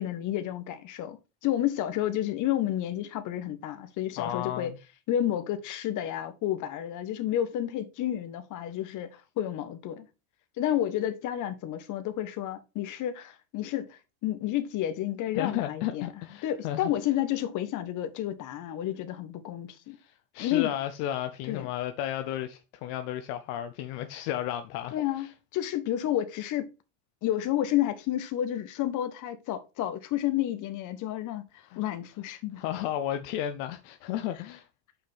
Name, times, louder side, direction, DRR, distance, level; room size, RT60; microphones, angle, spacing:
voice 1, 0.0-4.7 5.1-10.1 10.6-16.1 16.4-20.0 20.4-20.8 21.4-21.7 24.9-26.7 27.2-32.6, left 12 dB, 50° left, 1.2 m, -30 dB
voice 2, 4.2-4.8 15.3-16.9 20.0-25.3 31.7-31.8 32.6-34.7, left 12 dB, 70° left, 0.8 m, -33 dB
6.5 x 5.9 x 3.5 m
supercardioid pair, 120°, 39 cm